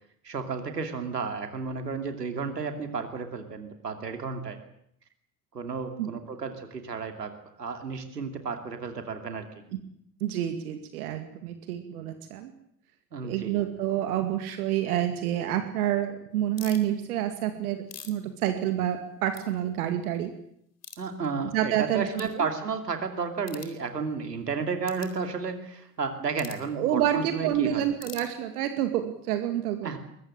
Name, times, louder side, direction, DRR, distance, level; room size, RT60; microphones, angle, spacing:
voice 1, 0.2-4.6 5.5-9.5 13.1-13.6 21.0-27.8 29.8-30.0, right 5 dB, 80° right, 6 dB, 2.9 m, -32 dB
voice 2, 10.2-12.5 13.2-20.3 21.5-22.1 22.3-22.5 26.7-30.0, right 11 dB, 65° right, 7 dB, 2.4 m, -28 dB
sound 1, 16.5-16.9 17.5-19.0 19.3-19.4 19.9-20.0 20.8-21.0 21.6-21.7 22.1-22.3 23.4-23.8 24.8-25.1 26.3-26.7 28.0-28.7, left 7 dB, 30° left, 3.9 m, -44 dB
23.5 x 22.5 x 7.7 m, 0.73 s
figure-of-eight pair, 65°, 47 cm